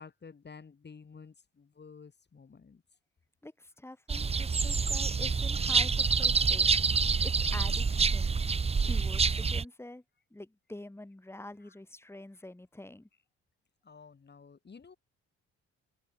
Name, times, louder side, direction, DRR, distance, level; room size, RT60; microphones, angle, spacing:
voice 1, 0.0-2.8 4.1-4.2 6.0-6.1 11.6-11.8 13.8-15.0, left 5 dB, 35° left, 4.0 m, -52 dB
voice 2, 3.4-6.7 7.2-8.3 8.8-10.0 10.3-13.1, left 1 dB, 10° left, 3.9 m, -46 dB
sound 1, 4.1-9.6, right 5 dB, 20° right, 0.6 m, -27 dB
cardioid pair, 90°, 30 cm